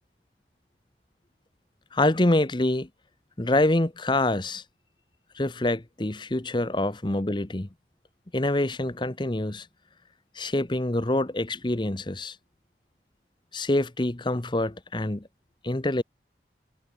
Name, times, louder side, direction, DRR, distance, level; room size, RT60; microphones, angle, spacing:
voice 1, 1.9-2.9 3.4-4.6 5.4-7.7 8.3-9.7 10.4-12.4 13.5-15.3 15.6-16.0, left 1 dB, 25° left, 1.0 m, -26 dB
head